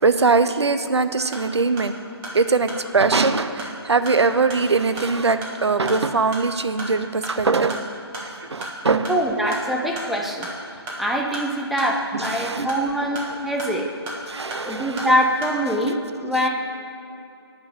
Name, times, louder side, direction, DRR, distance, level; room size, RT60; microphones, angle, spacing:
voice 1, 0.0-2.0 2.3-7.9 8.2-9.1 12.1-12.7 13.3-13.4 14.3-15.2, right 4 dB, 85° right, 10 dB, 0.7 m, -21 dB
sound 1, 1.3-15.6, right 1 dB, 15° right, 1.5 m, -36 dB
voice 2, 9.1-10.5 11.0-13.9 14.6-16.5, equal, ahead, 0 dB, 0.4 m, -23 dB
9.9 x 5.3 x 7.2 m, 2.6 s
figure-of-eight pair, 150°, 14 cm